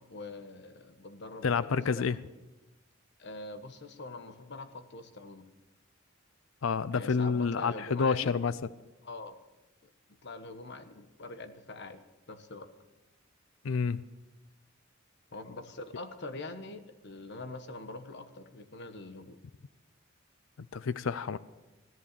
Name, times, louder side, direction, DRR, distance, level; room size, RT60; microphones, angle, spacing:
voice 1, 0.0-2.0 3.2-5.5 6.9-8.4 9.0-9.4 10.2-12.0 12.3-12.7 15.3-19.4, left 2 dB, 60° left, 8 dB, 1.3 m, -44 dB
voice 2, 1.4-2.2 6.6-8.5 13.6-14.0 20.6-21.4, left 5 dB, 85° left, 16 dB, 0.5 m, -29 dB
17.0 x 11.0 x 6.8 m, 1.1 s
head